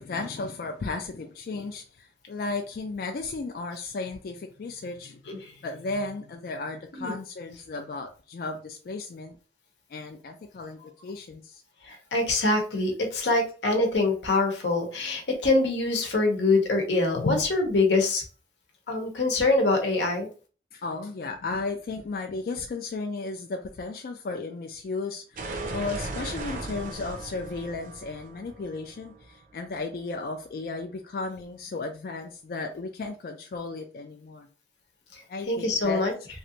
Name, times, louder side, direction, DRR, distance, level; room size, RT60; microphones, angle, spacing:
voice 1, 0.0-9.4 9.9-11.6 17.2-17.4 20.7-34.5 35.3-36.0, left 3 dB, 55° left, 4 dB, 0.3 m, -34 dB
voice 2, 11.8-18.2 18.9-20.3 35.1-36.1, left 2 dB, 90° left, 2 dB, 0.9 m, -24 dB
sound 1, 25.4-30.1, right 2 dB, 50° right, 0.5 m, -37 dB
3.1 x 2.5 x 2.8 m, 0.37 s
head